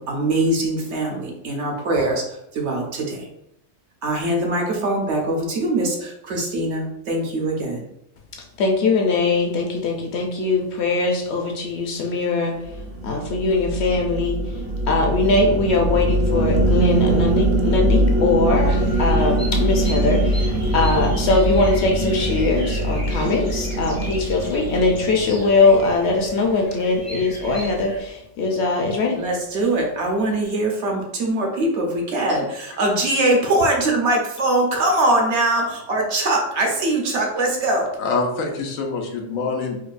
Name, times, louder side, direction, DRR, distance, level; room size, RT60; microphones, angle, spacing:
voice 1, 0.0-2.2 2.5-3.3 4.0-7.8 29.1-37.9, right 1 dB, 65° right, 1 dB, 0.9 m, -22 dB
voice 2, 8.6-12.6 13.0-14.4 14.9-29.2, left 3 dB, 65° left, 1 dB, 0.8 m, -21 dB
sound 1, 12.6-26.2, right 1 dB, 85° right, 1.1 m, -22 dB
Bird vocalization bird call bird song, 18.6-28.0, equal, 30° left, 0.4 m, -38 dB
voice 3, 38.0-39.8, left 3 dB, 90° left, 2 dB, 1.1 m, -25 dB
4.6 x 2.1 x 2.5 m, 0.82 s
omnidirectional pair, 1.3 m